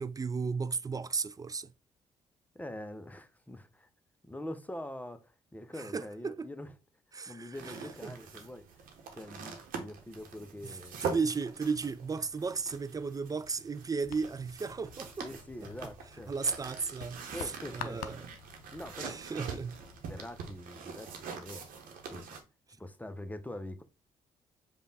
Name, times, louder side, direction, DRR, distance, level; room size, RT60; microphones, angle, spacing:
voice 1, 0.0-1.7 5.8-6.5 7.1-7.7 8.0-8.2 10.6-15.3 15.8-15.9 16.3-17.3 17.7-18.3 19.0-19.8, right 4 dB, 25° right, 0.4 m, -35 dB
voice 2, 2.5-3.9 4.3-6.7 7.3-8.7 9.1-11.0 15.2-16.3 17.3-18.0 18.7-19.1 20.0-21.7 22.1-22.3 22.7-23.8, left 1 dB, 10° left, 0.7 m, -44 dB
sound 1, 7.5-22.4, right 5 dB, 70° right, 1.0 m, -44 dB
sound 2, 14.0-20.6, left 10 dB, 80° left, 0.5 m, -49 dB
5.0 x 2.4 x 3.9 m
hypercardioid pair, 50°, 15 cm